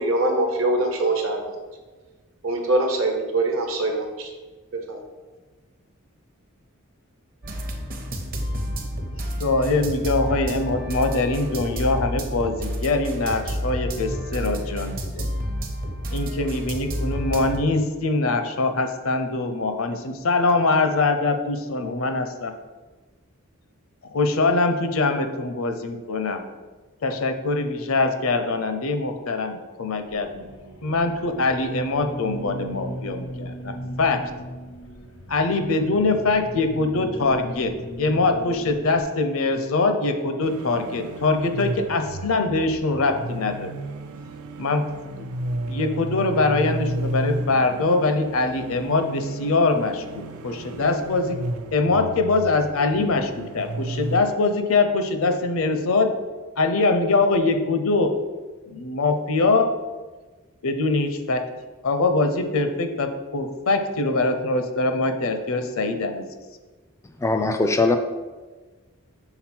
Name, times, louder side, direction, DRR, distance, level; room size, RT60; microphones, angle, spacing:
voice 1, 0.0-1.4 2.4-4.3 4.9-5.0, right 2 dB, 65° right, 3 dB, 1.0 m, -23 dB
sound 1, 7.4-17.6, equal, 45° right, 0.8 m, -30 dB
voice 2, 9.4-15.3 16.1-22.5 24.0-26.4 27.0-30.5 30.8-34.2 35.3-37.7 38.0-43.7 44.6-44.9 45.2-45.3 45.7-51.4 51.7-56.2 56.6-58.1 58.7-59.7 60.6-61.4 61.8-66.2, left 3 dB, 70° left, 7 dB, 0.6 m, -23 dB
sound 2, 29.8-39.0, equal, 85° left, 0.9 m, -38 dB
sound 3, 40.4-54.2, right 2 dB, 85° right, 0.4 m, -33 dB
voice 3, 67.2-68.0, left 2 dB, 15° left, 6 dB, 0.3 m, -20 dB
5.9 x 3.8 x 4.4 m, 1.3 s
head